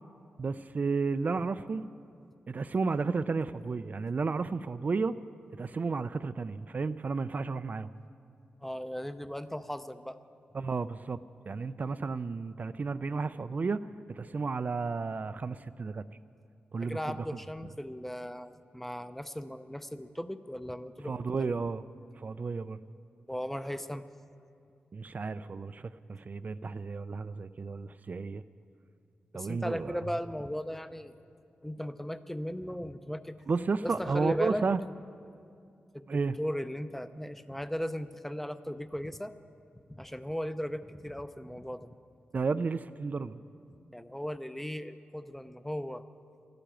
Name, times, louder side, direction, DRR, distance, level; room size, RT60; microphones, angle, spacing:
voice 1, 0.4-1.9 2.5-5.2 5.5-7.9 10.5-11.2 11.5-16.2 16.7-17.2 17.6-17.7 21.0-21.8 22.2-22.8 24.9-28.4 29.3-30.0 33.5-34.8 36.1-36.4 42.3-43.4, right 4 dB, 45° right, 12 dB, 0.4 m, -32 dB
voice 2, 8.6-10.2 16.8-21.1 21.4-21.5 23.3-24.0 29.3-31.1 31.6-33.4 33.8-34.7 35.9-36.0 36.4-39.3 39.9-41.9 43.9-46.0, equal, 5° left, 11 dB, 0.6 m, -37 dB
13.0 x 12.0 x 8.9 m, 2.4 s
cardioid pair, 80°, 4 cm